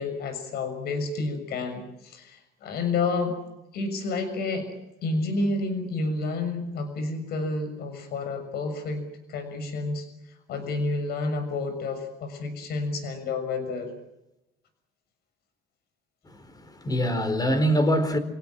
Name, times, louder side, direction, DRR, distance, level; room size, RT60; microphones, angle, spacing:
voice 1, 0.0-3.4 3.7-4.8 5.0-9.0 9.3-10.1 10.5-13.9, left 3 dB, 70° left, 6.5 m, -30 dB
voice 2, 16.2-18.2, equal, 20° left, 4.4 m, -24 dB
28.5 x 17.5 x 9.0 m
cardioid pair, 110°, 17 cm